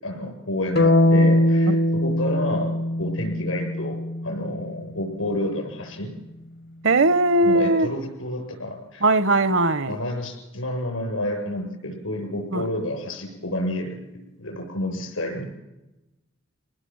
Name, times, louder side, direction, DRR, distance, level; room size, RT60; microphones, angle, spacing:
voice 1, 0.0-6.1 7.4-9.1 9.9-15.5, left 1 dB, 85° left, 7.5 m, -30 dB
sound 1, 0.8-4.8, left 1 dB, 50° left, 0.8 m, -21 dB
voice 2, 6.8-7.9 9.0-10.0 12.5-12.6, right 2 dB, 65° right, 0.7 m, -19 dB
26.0 x 19.0 x 7.9 m
head